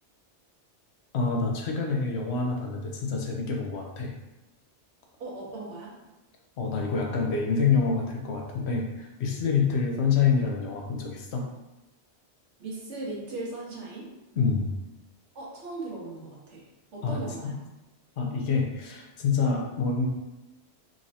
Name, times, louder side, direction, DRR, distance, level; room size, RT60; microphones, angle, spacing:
voice 1, 1.1-4.1 6.6-11.4 14.4-14.7 17.0-17.5 18.2-20.1, left 5 dB, 70° left, 1 dB, 0.9 m, -27 dB
voice 2, 5.2-5.9 12.6-14.1 15.3-17.5, right 2 dB, 85° right, -4 dB, 1.3 m, -38 dB
3.7 x 3.1 x 2.6 m, 1.0 s
omnidirectional pair, 1.2 m